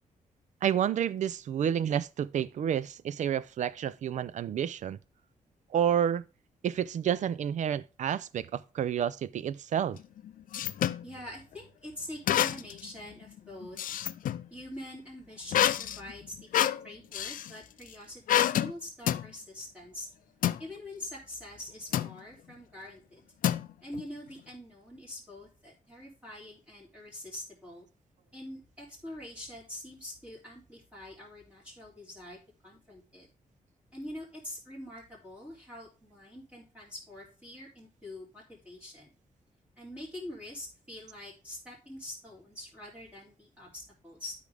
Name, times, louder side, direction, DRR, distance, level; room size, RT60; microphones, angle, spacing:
voice 1, 0.6-5.0 5.7-6.2 6.6-10.0, right 9 dB, 60° right, 0.5 m, -29 dB
sound 1, 9.9-11.0 12.3-12.8 13.2-14.4 15.5-17.5 18.3-18.7 19.1-19.3 20.4-20.6 21.9-22.2 23.4-24.0, left 11 dB, 80° left, 0.5 m, -28 dB
voice 2, 11.0-13.9 14.5-16.3 16.8-20.1 20.6-23.2 23.8-27.9 28.3-32.4 32.6-33.3 33.9-39.1 39.8-44.3, left 1 dB, 10° right, 3.3 m, -45 dB
12.0 x 5.0 x 3.4 m
wide cardioid pair, 170°, 14 cm